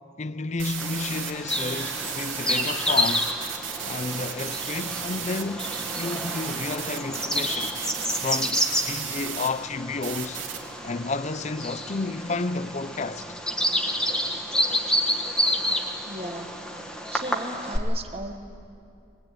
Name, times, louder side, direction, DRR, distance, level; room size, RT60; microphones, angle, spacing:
voice 1, 0.2-3.3 3.8-5.7 6.0-7.7 8.2-10.4 10.8-13.4, left 3 dB, 35° left, 0.5 m, -31 dB
sound 1, 0.6-9.5 10.0-10.6, right 8 dB, 85° right, 2.4 m, -34 dB
Bird vocalization bird call bird song, 0.8-17.8, equal, 5° left, 1.5 m, -29 dB
voice 2, 16.0-16.6 17.1-18.3, right 1 dB, 30° right, 1.2 m, -36 dB
21.5 x 19.5 x 8.9 m
head